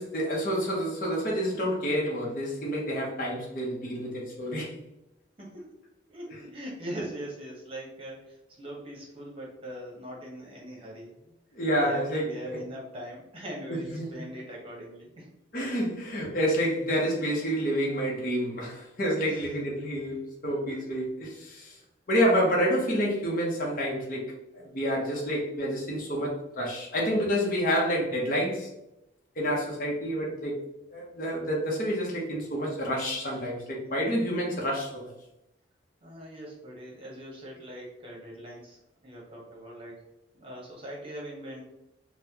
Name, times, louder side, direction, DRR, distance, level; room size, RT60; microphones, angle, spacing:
voice 1, 0.0-4.8 11.5-12.6 13.7-14.1 15.5-21.8 22.1-24.3 24.5-28.7 29.4-30.6 30.9-35.1, equal, 45° left, -3 dB, 0.8 m, -28 dB
voice 2, 5.4-5.7 6.1-11.3 11.7-15.3 19.2-19.5 20.7-20.8 33.9-34.3 36.0-40.0 40.3-41.6, equal, 30° right, -3 dB, 1.0 m, -41 dB
4.0 x 2.1 x 2.8 m, 0.89 s
head